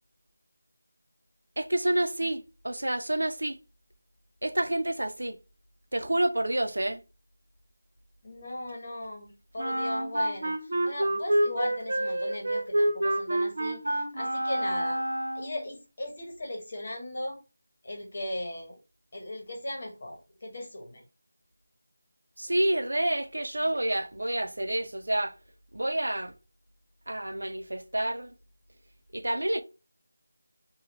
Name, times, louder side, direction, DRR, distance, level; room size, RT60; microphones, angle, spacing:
voice 1, 1.6-3.6 4.4-5.4 5.9-7.0 22.4-25.4 25.7-26.3 27.1-28.4 29.1-29.6, right 1 dB, 90° right, 0.7 m, -28 dB
voice 2, 8.2-10.5 10.8-15.0 15.3-17.4 17.8-18.8 19.1-21.0, left 1 dB, 30° left, 1.2 m, -37 dB
Wind instrument woodwind instrument, 9.6-15.6, right 1 dB, 50° right, 1.2 m, -28 dB
3.8 x 2.4 x 3.1 m
figure-of-eight pair, 180°, 0 cm